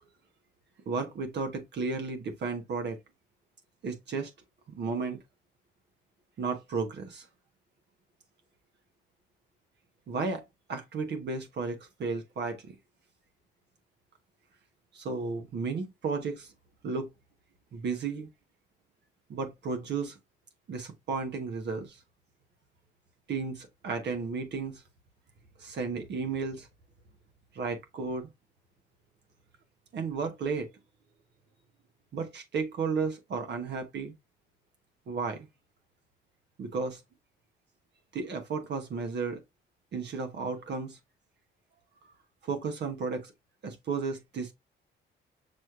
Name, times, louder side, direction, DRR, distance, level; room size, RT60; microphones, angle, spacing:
voice 1, 0.9-3.0 3.8-4.3 4.7-5.2 6.4-7.3 10.1-10.4 10.7-12.8 14.9-16.5 16.8-17.1 17.7-18.3 19.3-20.2 20.7-22.0 23.3-24.8 25.6-26.7 27.5-28.3 29.9-30.7 32.1-34.1 35.1-35.5 36.6-37.0 38.1-39.4 39.9-41.0 42.4-43.3 43.6-44.5, right 4 dB, 60° right, 1.0 m, -33 dB
6.2 x 3.1 x 2.4 m
cardioid pair, 90°, 20 cm